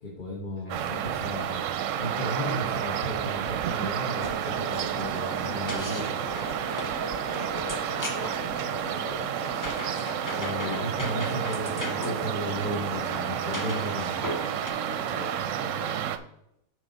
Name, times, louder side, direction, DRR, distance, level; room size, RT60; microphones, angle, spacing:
voice 1, 0.0-1.6 1.9-6.1 10.3-14.1, equal, 40° left, -2 dB, 1.4 m, -34 dB
sound 1, 0.7-16.2, right 9 dB, 70° right, 0.9 m, -31 dB
sound 2, 4.2-14.7, left 1 dB, 20° left, 0.7 m, -37 dB
voice 2, 7.2-8.3 8.6-9.6 10.5-10.9 14.9-15.9, left 4 dB, 85° left, 5 dB, 0.3 m, -43 dB
8.0 x 4.9 x 4.0 m, 0.80 s
omnidirectional pair, 1.4 m